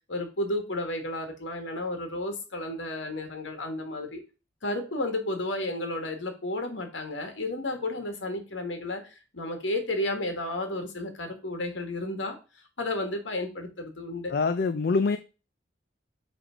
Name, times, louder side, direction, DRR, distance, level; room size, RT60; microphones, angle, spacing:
voice 1, 0.1-4.2 4.6-12.4 12.8-14.3, left 1 dB, 85° left, 5 dB, 1.6 m, -32 dB
voice 2, 14.3-15.2, left 4 dB, 55° left, 10 dB, 0.4 m, -24 dB
7.3 x 3.5 x 5.0 m, 0.32 s
head